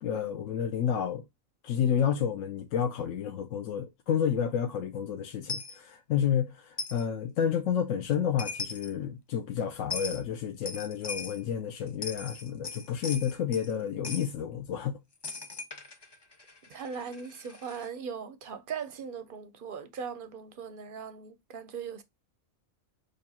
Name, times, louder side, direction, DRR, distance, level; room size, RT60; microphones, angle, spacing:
voice 1, 0.0-1.2 1.6-15.0, left 8 dB, 70° left, 1.0 m, -30 dB
Coin (dropping), 5.5-5.7 6.8-7.0 8.1-8.2 8.4-8.9 9.9-10.2 10.7-11.4 11.9-13.7 14.0-14.3 15.2-17.9, left 4 dB, 35° left, 0.4 m, -39 dB
voice 2, 16.7-22.0, right 6 dB, 55° right, 0.6 m, -39 dB
6.7 x 2.4 x 2.8 m
omnidirectional pair, 1.4 m